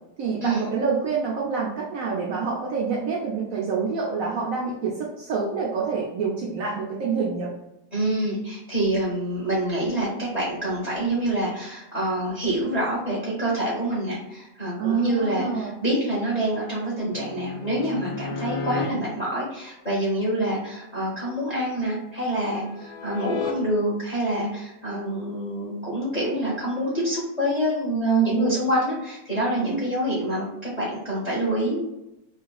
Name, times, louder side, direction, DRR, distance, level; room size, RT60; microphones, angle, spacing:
voice 1, 0.2-7.5 14.8-15.7 27.9-28.5 29.7-29.9, right 5 dB, 80° right, -3 dB, 0.7 m, -27 dB
voice 2, 7.9-31.8, right 1 dB, 30° left, -6 dB, 0.7 m, -26 dB
sound 1, 17.1-18.9 21.6-23.5 27.0-27.2, left 5 dB, 75° left, 0.8 m, -34 dB
3.8 x 2.4 x 2.3 m, 0.90 s
omnidirectional pair, 2.0 m